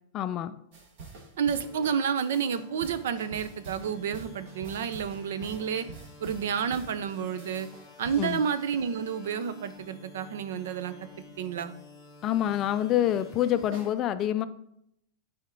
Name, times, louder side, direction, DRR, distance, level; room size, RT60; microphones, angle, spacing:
voice 1, 0.1-0.6 8.2-8.4 12.2-14.5, left 11 dB, 25° left, 0.3 m, -27 dB
sound 1, 0.7-8.9 13.7-13.9, right 4 dB, 45° right, 1.5 m, -47 dB
sound 2, 1.4-13.9, left 3 dB, 5° left, 1.2 m, -51 dB
voice 2, 1.4-5.8 6.2-7.7 8.0-11.0 11.4-11.7, right 7 dB, 75° right, 0.6 m, -30 dB
10.5 x 4.3 x 3.8 m
supercardioid pair, 165°, 0 cm